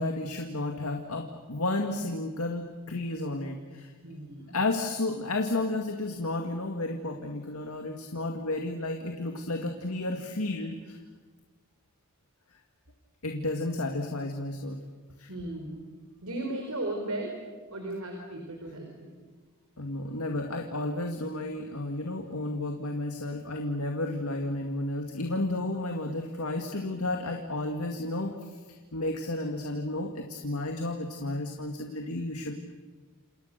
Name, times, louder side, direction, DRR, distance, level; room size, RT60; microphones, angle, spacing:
voice 1, 0.0-3.9 4.5-11.0 13.2-14.8 15.2-15.3 19.8-28.6 28.9-32.5, left 2 dB, 75° left, 3 dB, 2.2 m, -32 dB
voice 2, 4.0-4.6 15.3-15.8 16.2-17.3 17.7-19.1, right 1 dB, 80° right, 2 dB, 4.5 m, -36 dB
29.0 x 28.5 x 6.8 m, 1.4 s
head